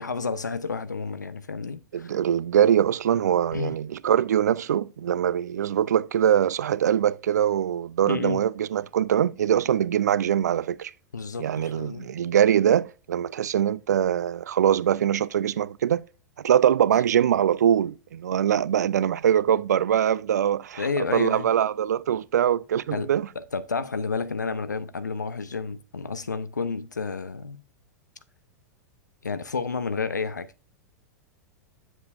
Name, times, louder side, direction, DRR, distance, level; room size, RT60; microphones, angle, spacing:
voice 1, 0.0-2.1 3.5-3.8 8.0-8.4 11.1-12.1 20.8-21.5 22.9-23.1 23.4-27.6 29.2-30.5, left 4 dB, 80° left, 0.6 m, -30 dB
voice 2, 1.9-10.9 11.4-16.0 16.4-23.3, right 9 dB, 70° right, 0.4 m, -23 dB
8.0 x 7.2 x 2.5 m
figure-of-eight pair, 95°, 10 cm